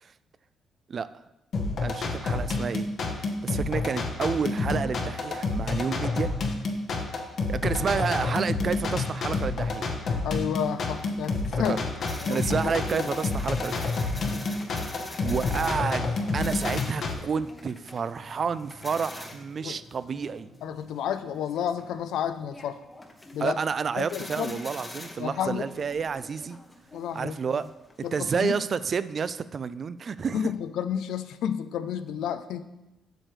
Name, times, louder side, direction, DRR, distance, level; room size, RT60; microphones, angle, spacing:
sound 1, 1.5-17.1, left 3 dB, 60° left, 1.0 m, -29 dB
voice 1, 1.8-2.9 3.2-6.3 7.5-9.9 11.7-11.8 12.3-14.0 15.2-20.5 23.4-26.6 27.1-27.6 28.0-30.4, right 6 dB, 45° right, 15 dB, 0.3 m, -30 dB
voice 2, 10.2-11.8 12.2-13.1 14.2-14.5 19.6-19.8 20.6-22.8 23.3-23.6 24.0-24.5 25.2-25.7 26.9-27.6 28.0-28.5 30.3-32.7, left 9 dB, 80° left, 11 dB, 0.4 m, -31 dB
sound 2, 10.6-28.5, left 2 dB, 20° left, 0.9 m, -45 dB
7.7 x 6.5 x 3.2 m, 0.98 s
cardioid pair, 90°, 0 cm